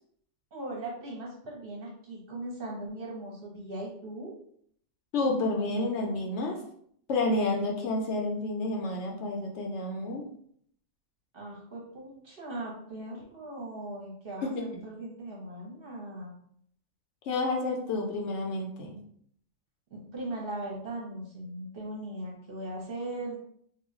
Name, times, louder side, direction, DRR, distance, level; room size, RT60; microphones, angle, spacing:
voice 1, 0.5-4.3 11.3-16.4 19.9-23.4, right 1 dB, 50° right, -3 dB, 0.8 m, -39 dB
voice 2, 5.1-6.6 7.1-10.3 14.4-14.8 17.3-19.0, left 2 dB, 70° left, 1 dB, 0.8 m, -30 dB
2.4 x 2.1 x 3.6 m, 0.64 s
omnidirectional pair, 1.3 m